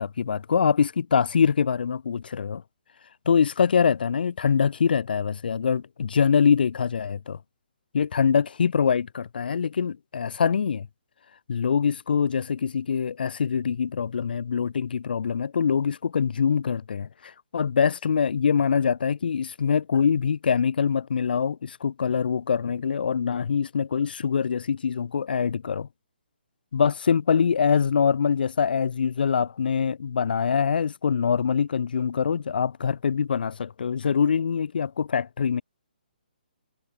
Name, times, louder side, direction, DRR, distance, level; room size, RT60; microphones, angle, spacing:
voice 1, 0.0-2.6 3.3-7.4 7.9-10.9 11.5-25.9 26.7-35.6, left 6 dB, 70° left, 0.5 m, -24 dB
hypercardioid pair, 155°, 5 cm